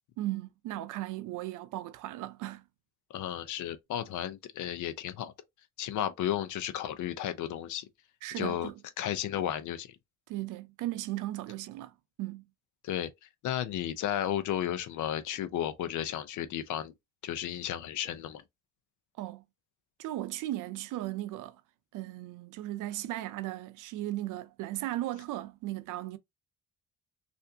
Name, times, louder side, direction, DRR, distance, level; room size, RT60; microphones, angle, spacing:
voice 1, 0.2-2.6 8.2-8.8 10.3-12.4 19.2-19.4 20.0-21.6 21.9-26.2, right 15 dB, 90° right, 0.5 m, -36 dB
voice 2, 3.1-5.3 5.8-7.9 8.4-8.7 9.0-10.0 12.8-16.9 17.2-18.4, left 11 dB, 75° left, 0.6 m, -33 dB
3.3 x 2.6 x 2.6 m
cardioid pair, 90°, 30 cm